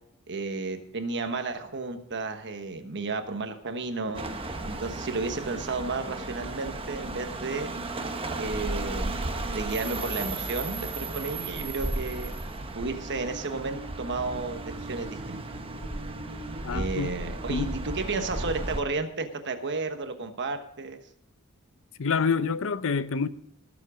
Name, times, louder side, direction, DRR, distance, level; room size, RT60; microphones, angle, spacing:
voice 1, 0.3-4.2 4.6-7.7 8.4-9.1 9.5-12.3 12.7-15.4 16.7-21.0, right 3 dB, 55° right, 1.3 m, -32 dB
sound 1, 4.1-18.8, right 2 dB, 25° right, 1.0 m, -35 dB
sound 2, 12.8-19.7, right 2 dB, 80° right, 1.7 m, -46 dB
voice 2, 16.6-17.2 17.5-17.7 22.0-23.3, left 5 dB, 65° left, 0.7 m, -27 dB
18.0 x 7.3 x 5.0 m
head